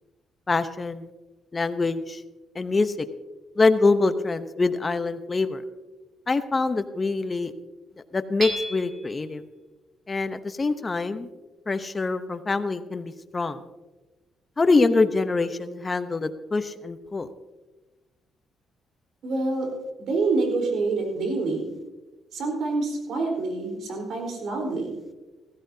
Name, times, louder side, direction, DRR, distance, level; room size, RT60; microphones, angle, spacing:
voice 1, 0.5-1.1 1.5-2.2 2.5-3.1 3.6-5.6 6.3-7.5 8.1-9.4 10.1-11.3 11.7-13.6 14.6-17.3, left 3 dB, 25° left, 10 dB, 0.8 m, -24 dB
Hammer / Chink clink, 8.4-9.2, right 2 dB, 50° right, 2.9 m, -32 dB
voice 2, 19.2-19.7 20.0-21.7 22.3-24.9, right 3 dB, 70° right, 1 dB, 4.2 m, -26 dB
16.0 x 15.5 x 2.8 m, 1.1 s
cardioid pair, 90°, 0 cm